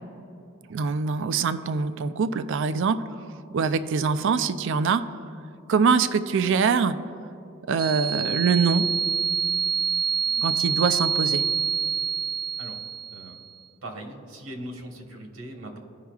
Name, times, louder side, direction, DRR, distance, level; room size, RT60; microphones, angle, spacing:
voice 1, 0.7-3.0 3.5-5.0 5.7-7.0 7.7-8.9 10.4-11.4, right 5 dB, 65° right, 12 dB, 0.4 m, -23 dB
sound 1, 7.8-13.4, right 6 dB, 20° right, 0.6 m, -26 dB
voice 2, 13.8-15.8, right 1 dB, 85° right, 2 dB, 1.3 m, -39 dB
15.5 x 5.6 x 2.4 m, 2.7 s
head